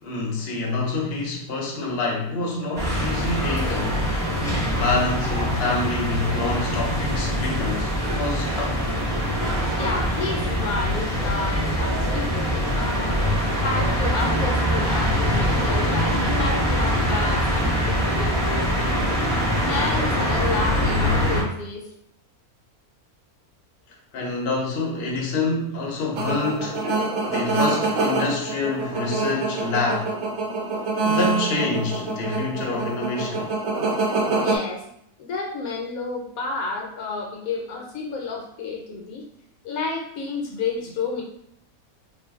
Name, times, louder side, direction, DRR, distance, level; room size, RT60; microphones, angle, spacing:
voice 1, 0.0-4.1 4.7-8.8 24.1-26.9 27.3-30.1 31.0-33.5, left 3 dB, 50° left, -1 dB, 0.7 m, -27 dB
sound 1, 2.8-21.4, equal, 5° left, 0.7 m, -23 dB
voice 2, 9.7-13.2 13.6-19.1 19.7-21.8 34.4-34.8 35.2-39.2 39.6-41.2, left 4 dB, 75° left, 0 dB, 1.0 m, -30 dB
sound 2, 26.1-34.6, right 3 dB, 65° right, 0.8 m, -25 dB
2.5 x 2.2 x 3.5 m, 0.75 s
omnidirectional pair, 1.6 m